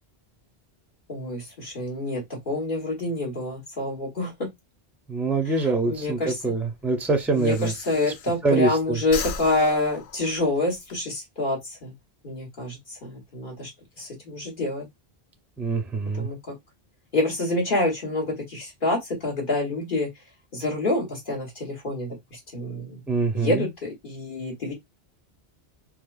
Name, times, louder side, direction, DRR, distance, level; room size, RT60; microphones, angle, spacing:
voice 1, 1.1-4.3 5.4-6.4 7.3-11.9 12.2-13.7 14.0-14.8 16.1-16.5 17.1-20.1 20.5-23.0 23.3-24.7, left 2 dB, 55° left, 1.4 m, -27 dB
voice 2, 5.1-7.7 8.4-9.0 15.6-16.3 23.1-23.6, right 3 dB, ahead, 0.4 m, -24 dB
Breathing, 5.9-8.7 9.0-11.0, left 5 dB, 85° left, 0.8 m, -37 dB
4.5 x 2.1 x 2.4 m
omnidirectional pair, 1.1 m